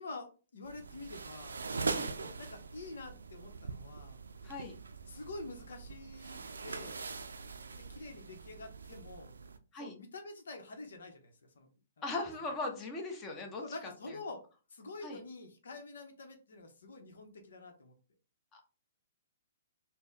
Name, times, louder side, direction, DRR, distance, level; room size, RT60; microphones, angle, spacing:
voice 1, 0.0-1.6 2.2-4.2 5.1-7.0 7.7-9.3 9.8-11.7 13.6-14.4 14.7-17.9, left 2 dB, 75° left, 4 dB, 0.8 m, -47 dB
sound 1, 0.6-9.6, right 4 dB, 80° right, 0.4 m, -42 dB
voice 2, 4.4-4.7 9.7-9.9 12.0-13.6 14.1-14.2 15.0-15.2 18.5-18.6, left 2 dB, 20° left, 1 dB, 0.9 m, -39 dB
4.2 x 2.1 x 3.4 m, 0.35 s
hypercardioid pair, 125°, 0 cm